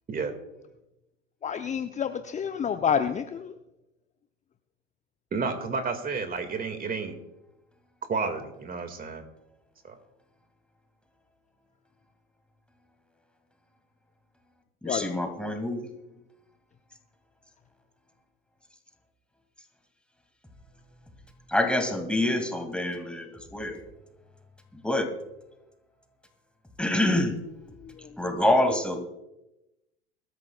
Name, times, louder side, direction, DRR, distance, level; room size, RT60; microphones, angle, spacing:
voice 1, 1.4-3.5 14.8-15.2 27.8-28.2, left 7 dB, 20° left, 8 dB, 0.7 m, -29 dB
voice 2, 5.3-7.2 8.1-9.2 9.8-10.0, right 4 dB, 25° right, 8 dB, 2.1 m, -31 dB
voice 3, 14.8-15.8 21.5-23.8 24.8-25.1 26.8-27.4 28.2-29.0, left 1 dB, 5° left, 4 dB, 2.4 m, -26 dB
22.5 x 13.5 x 2.4 m, 0.94 s
figure-of-eight pair, 80°, 34 cm